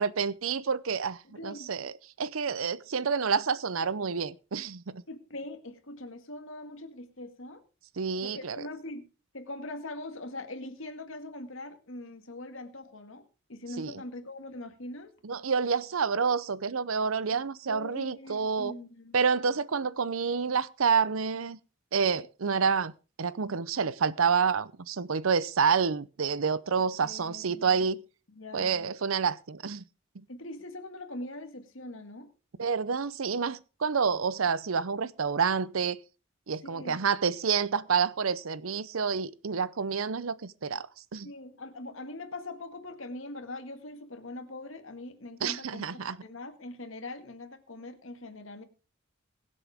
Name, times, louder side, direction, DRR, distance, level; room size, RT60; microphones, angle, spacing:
voice 1, 0.0-1.9 2.2-5.0 8.0-8.6 13.8-13.9 15.2-18.8 19.1-21.6 21.9-22.9 23.2-28.0 28.5-29.8 30.2-30.3 32.6-36.0 36.5-41.3 45.4-46.2, right 6 dB, 90° right, 0.7 m, -28 dB
voice 2, 1.2-1.7 5.1-7.6 8.2-9.0 9.3-13.2 13.5-15.1 17.3-17.4 17.7-19.2 27.0-27.8 28.3-28.9 30.3-32.3 36.6-37.0 41.2-48.6, left 2 dB, 75° left, 2.0 m, -42 dB
22.5 x 7.8 x 3.5 m
head